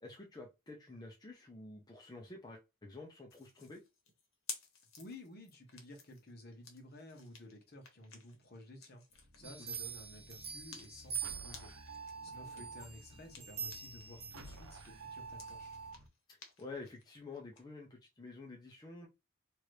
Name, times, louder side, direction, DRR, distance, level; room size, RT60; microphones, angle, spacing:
voice 1, 0.0-3.8 9.4-9.7 12.3-12.6 16.6-19.1, left 3 dB, 20° left, 0.5 m, -50 dB
sound 1, 3.3-14.1 14.4-17.6, left 5 dB, 85° left, 1.0 m, -54 dB
voice 2, 5.0-11.7 12.2-15.8, left 1 dB, 50° left, 1.0 m, -53 dB
sound 2, 9.1-16.1, right 3 dB, 80° right, 0.7 m, -51 dB
sound 3, 9.4-12.0 12.6-14.9 15.4-15.5, right 7 dB, 30° right, 0.6 m, -45 dB
3.0 x 2.5 x 3.1 m
head